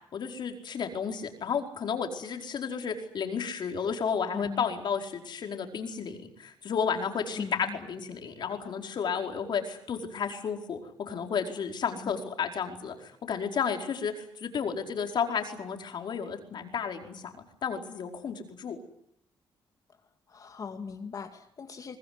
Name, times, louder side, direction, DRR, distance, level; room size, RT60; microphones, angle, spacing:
voice 1, 0.1-10.8 11.1-17.3 17.6-18.8, left 6 dB, 60° left, 4 dB, 5.0 m, -32 dB
voice 2, 4.3-4.7 7.3-7.8 12.0-12.2 20.3-22.0, left 5 dB, 40° left, 6 dB, 2.3 m, -39 dB
24.5 x 19.5 x 9.9 m, 0.75 s
cardioid pair, 100°, 9 cm